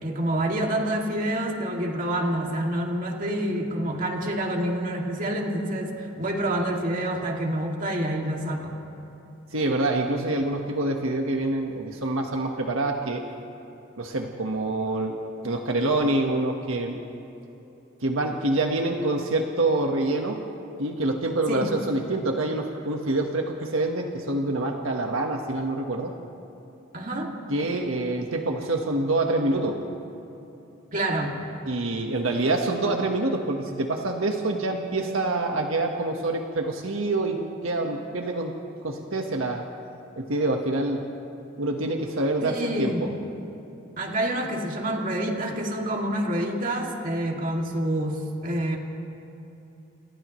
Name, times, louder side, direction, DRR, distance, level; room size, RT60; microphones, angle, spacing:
voice 1, 0.0-8.8 21.5-21.7 26.9-27.3 30.9-31.4 42.4-43.1 44.0-48.8, right 1 dB, 40° right, 0 dB, 2.5 m, -27 dB
voice 2, 9.5-13.2 14.0-17.0 18.0-20.5 20.8-26.1 27.5-29.8 31.7-38.6 38.8-39.6 40.2-41.1 41.6-43.1, right 2 dB, 80° right, 2 dB, 1.5 m, -26 dB
29.5 x 27.5 x 3.2 m, 3.0 s
head